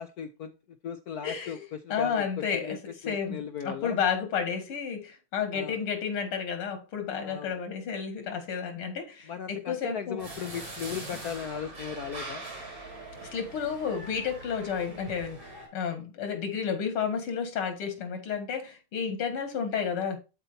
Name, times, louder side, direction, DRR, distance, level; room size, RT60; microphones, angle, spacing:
voice 1, 0.0-4.0 5.5-5.8 7.2-7.5 9.2-12.4, left 8 dB, 70° left, 0.8 m, -37 dB
voice 2, 1.2-1.6 1.9-2.8 3.1-10.2 13.2-20.2, left 7 dB, 90° left, 2.8 m, -31 dB
sound 1, 10.2-15.7, right 2 dB, 65° right, 4.8 m, -42 dB
12.0 x 4.4 x 2.7 m
omnidirectional pair, 2.3 m